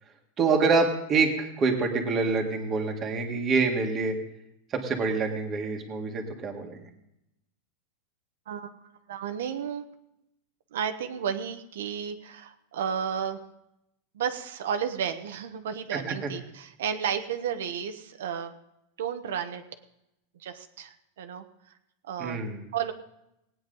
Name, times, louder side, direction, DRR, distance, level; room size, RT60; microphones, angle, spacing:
voice 1, 0.4-4.2 4.7-6.9 15.9-16.3 22.2-22.7, right 4 dB, 20° right, 2 dB, 1.6 m, -26 dB
voice 2, 9.1-9.9 10.7-13.4 14.1-18.5 19.0-19.6 20.4-20.9 21.2-21.4 22.1-22.4 22.7-22.9, right 8 dB, 85° right, 7 dB, 1.0 m, -32 dB
18.5 x 9.2 x 3.9 m, 0.84 s
supercardioid pair, 170°, 0 cm